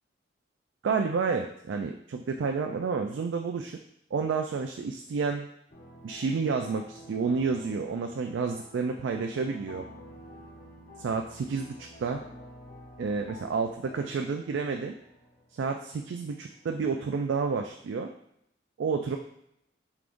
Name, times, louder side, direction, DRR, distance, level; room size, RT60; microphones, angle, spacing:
voice 1, 0.8-3.8 4.1-5.5 6.0-9.8 11.0-12.2 13.0-15.0 15.5-18.1 18.8-19.2, right 5 dB, 80° right, 4 dB, 0.3 m, -30 dB
sound 1, 5.7-17.7, equal, 45° left, 0.8 m, -50 dB
4.6 x 3.6 x 2.5 m, 0.76 s
head